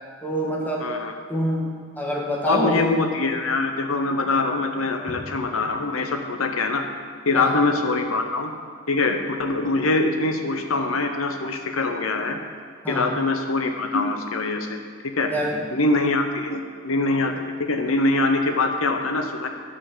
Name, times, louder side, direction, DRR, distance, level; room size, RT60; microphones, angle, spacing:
voice 1, 0.2-0.9 1.3-1.7 2.0-2.9 7.3-7.6 12.8-13.1 15.3-15.6, equal, 10° left, -3 dB, 1.4 m, -25 dB
voice 2, 0.8-1.1 2.4-6.8 7.3-8.5 8.9-12.4 12.9-15.3 15.7-17.3 17.6-19.5, left 3 dB, 85° left, 5 dB, 0.9 m, -23 dB
8.5 x 5.5 x 6.8 m, 2.1 s
head